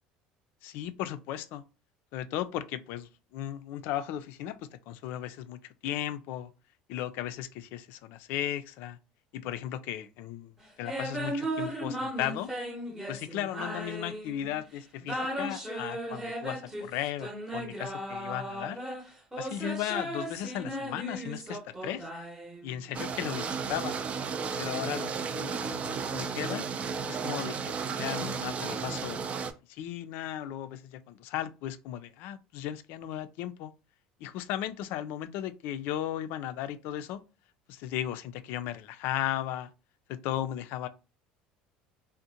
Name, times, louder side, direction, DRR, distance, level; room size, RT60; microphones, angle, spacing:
voice 1, 0.6-1.6 2.1-4.6 4.9-6.5 6.9-9.0 9.3-12.5 13.1-18.8 19.4-22.1 22.6-23.9 24.6-26.6 27.1-27.5 27.8-29.2 29.7-33.7 34.2-37.2 37.7-39.7 40.1-40.9, left 12 dB, 70° left, 0.3 m, -36 dB
sound 1, 10.8-14.6 15.0-22.9, right 1 dB, 10° right, 0.7 m, -36 dB
sound 2, 22.9-29.5, right 5 dB, 35° right, 0.3 m, -33 dB
2.5 x 2.0 x 2.8 m
supercardioid pair, 90°, 4 cm